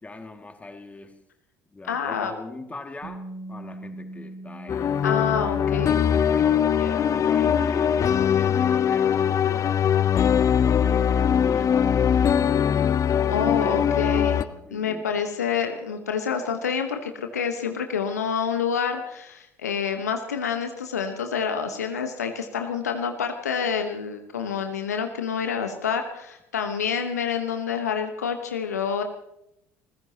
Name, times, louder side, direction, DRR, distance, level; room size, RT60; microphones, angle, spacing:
voice 1, 0.0-1.2 1.7-3.2 3.5-5.1 5.7-6.8 7.1-9.9 10.4-12.6 13.4-14.0 14.5-15.5, left 3 dB, 15° left, 5 dB, 2.2 m, -41 dB
voice 2, 1.9-2.3 5.0-6.0 6.8-7.1 13.3-14.4 14.7-29.0, left 7 dB, 80° left, 6 dB, 1.2 m, -28 dB
Bass guitar, 3.0-9.3, right 2 dB, 55° right, 4.6 m, -43 dB
sound 1, 4.7-14.4, left 8 dB, 40° left, 0.7 m, -21 dB
28.0 x 15.5 x 2.9 m, 0.83 s
figure-of-eight pair, 60°, 9 cm